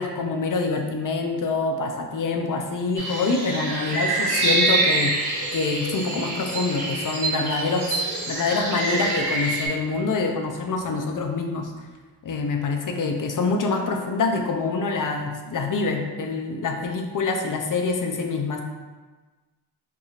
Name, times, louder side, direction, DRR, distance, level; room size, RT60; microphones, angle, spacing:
voice 1, 0.0-11.9 12.2-18.6, left 4 dB, 50° left, 3 dB, 0.5 m, -26 dB
sound 1, 3.0-9.7, right 2 dB, 65° right, 1.0 m, -26 dB
4.7 x 2.7 x 2.4 m, 1.3 s
cardioid pair, 85°, 41 cm